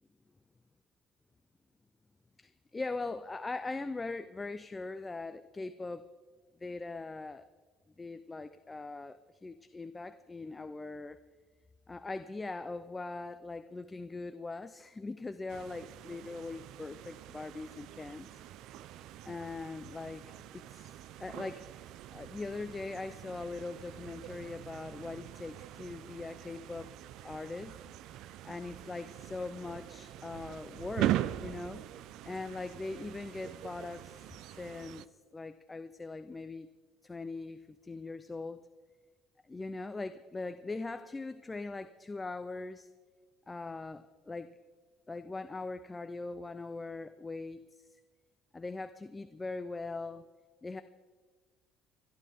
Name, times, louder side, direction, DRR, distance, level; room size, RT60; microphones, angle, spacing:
voice 1, 2.4-6.0 6.6-7.4 8.0-11.2 11.9-18.3 19.2-21.7 22.1-26.9 27.2-27.8 28.4-31.8 32.2-36.7 37.0-38.7 39.5-42.9 43.5-44.5 45.1-48.0 48.5-50.3 50.6-50.8, left 3 dB, 15° left, 11 dB, 0.5 m, -41 dB
sound 1, 15.5-35.1, right 13 dB, 70° right, 0.5 m, -42 dB
28.5 x 11.5 x 3.6 m, 1.5 s
cardioid pair, 135°, 0 cm